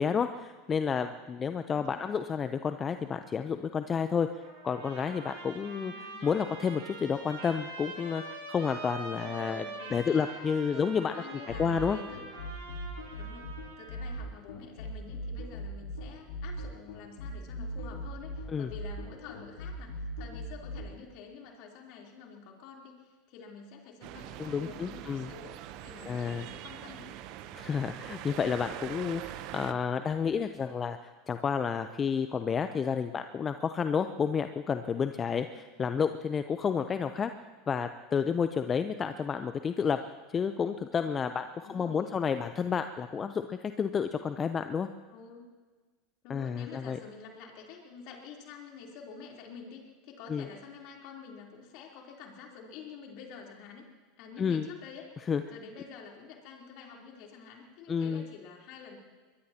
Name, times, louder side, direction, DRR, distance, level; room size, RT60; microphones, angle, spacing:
voice 1, 0.0-4.3 4.6-9.6 9.9-11.1 11.6-12.0 18.5-18.7 24.4-25.3 26.1-26.4 27.5-37.3 37.7-40.0 40.3-44.9 46.3-47.0 50.3-50.5 54.4-54.7 55.3-55.4 57.9-58.2, left 6 dB, 30° left, 9 dB, 0.7 m, -30 dB
voice 2, 1.7-2.1 5.8-6.4 9.1-12.2 13.2-13.5 13.8-25.5 25.8-27.1 35.5-36.0 41.6-42.2 45.1-45.5 46.2-53.8 54.2-55.1 55.5-59.0, left 5 dB, 60° left, -1 dB, 3.6 m, -48 dB
Trumpet, 4.4-14.1, right 2 dB, 80° right, 5.8 m, -44 dB
sound 1, 11.5-20.9, left 1 dB, 80° left, 3.1 m, -39 dB
sound 2, 24.0-29.7, right 12 dB, 60° right, 0.9 m, -43 dB
23.0 x 21.5 x 2.9 m, 1.4 s
hypercardioid pair, 90°, 0 cm